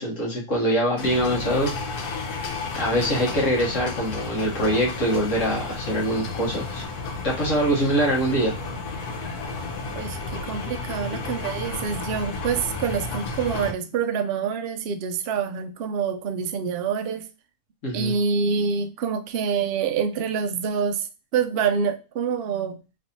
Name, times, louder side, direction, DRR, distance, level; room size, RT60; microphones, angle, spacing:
voice 1, 0.0-1.7 2.7-6.8 7.2-8.5 17.8-18.1, equal, 60° left, -2 dB, 1.4 m, -23 dB
sound 1, 1.0-13.7, left 3 dB, 85° left, 1.3 m, -32 dB
voice 2, 9.9-17.3 17.9-21.1 21.3-22.8, right 6 dB, 80° right, 8 dB, 0.5 m, -26 dB
3.4 x 3.2 x 2.6 m, 0.31 s
omnidirectional pair, 1.6 m